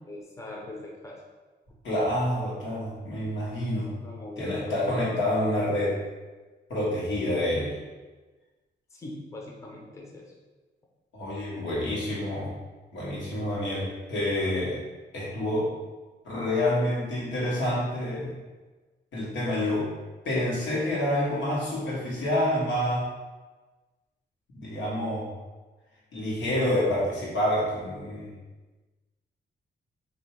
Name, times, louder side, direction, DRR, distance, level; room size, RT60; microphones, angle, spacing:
voice 1, 0.1-1.2 3.6-5.0 5.3-5.4 7.3-7.6 8.9-10.3, left 2 dB, 15° left, -2 dB, 0.5 m, -41 dB
voice 2, 1.8-3.9 4.4-5.9 6.7-7.7 11.1-12.5 12.9-14.8 15.1-15.7 16.2-18.3 19.1-19.9 20.2-23.0 24.5-25.3 26.1-28.3, left 1 dB, 85° left, -6 dB, 1.4 m, -28 dB
2.8 x 2.7 x 4.4 m, 1.3 s
wide cardioid pair, 135°, 19 cm